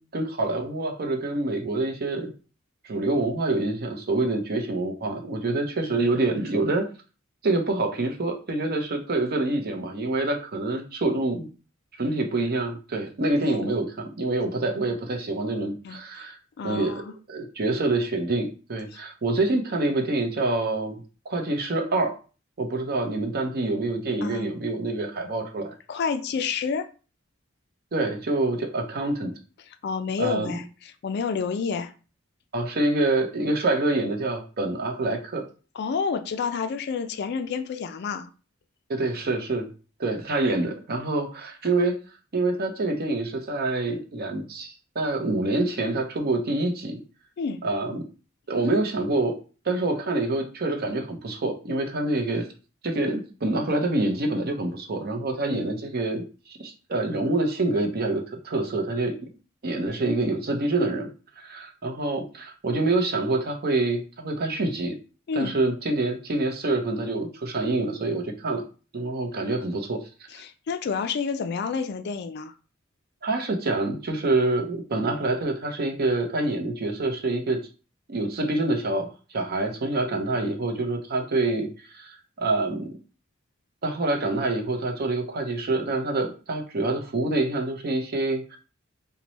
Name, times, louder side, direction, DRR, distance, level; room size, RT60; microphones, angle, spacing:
voice 1, 0.0-2.3 2.8-6.8 7.4-11.5 12.0-16.4 16.6-17.0 17.3-22.2 22.6-25.7 27.9-29.3 30.2-30.6 32.5-35.4 38.9-39.7 40.0-42.0 42.3-47.0 47.6-48.1 48.5-49.3 49.7-52.4 52.8-59.1 59.6-61.1 61.4-64.9 65.3-68.6 68.9-70.0 73.2-77.6 78.1-82.9 83.8-88.6, right 2 dB, 50° right, 0.7 m, -26 dB
voice 2, 16.6-17.1 18.9-19.0 24.2-24.5 25.9-26.9 29.8-31.9 35.8-38.3 47.4-47.6 55.5-55.6 65.3-65.5 70.3-72.5, left 5 dB, 55° left, 0.4 m, -29 dB
3.0 x 2.2 x 4.0 m
head